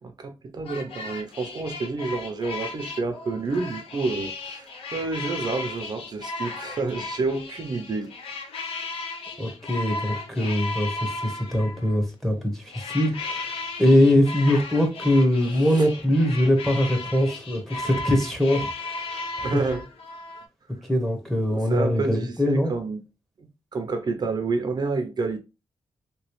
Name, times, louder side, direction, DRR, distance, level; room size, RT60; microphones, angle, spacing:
voice 1, 0.0-8.1 15.7-15.9 19.4-19.8 21.5-23.0 23.4-25.4, right 3 dB, 45° right, 0.5 m, -29 dB
sound 1, 0.7-12.0 12.7-20.5, left 3 dB, 85° left, 0.7 m, -35 dB
voice 2, 9.4-19.6 20.8-22.7, left 1 dB, ahead, 1.0 m, -22 dB
3.2 x 3.1 x 3.0 m
wide cardioid pair, 120°, 9 cm